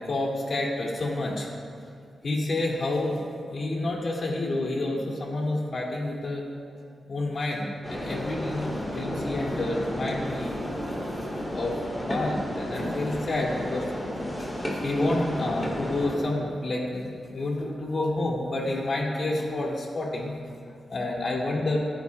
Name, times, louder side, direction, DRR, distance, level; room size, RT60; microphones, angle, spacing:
voice 1, 0.0-1.5 2.2-3.2 3.5-6.4 7.1-10.6 11.5-20.3 20.9-21.8, left 2 dB, 55° left, -2 dB, 2.7 m, -29 dB
sound 1, 7.8-16.2, equal, 10° left, 3.0 m, -32 dB
26.0 x 10.5 x 2.4 m, 2.4 s
wide cardioid pair, 105°, 0 cm